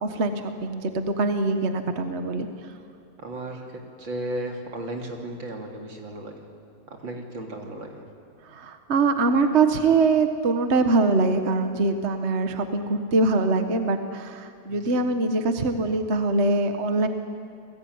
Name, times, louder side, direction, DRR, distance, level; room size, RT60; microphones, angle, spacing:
voice 1, 0.0-2.5 8.5-17.1, right 3 dB, 40° right, 7 dB, 1.5 m, -23 dB
voice 2, 3.2-6.5 6.9-8.0 14.7-15.0, right 1 dB, 70° right, 1 dB, 3.9 m, -35 dB
29.5 x 20.5 x 9.6 m, 2.4 s
omnidirectional pair, 2.1 m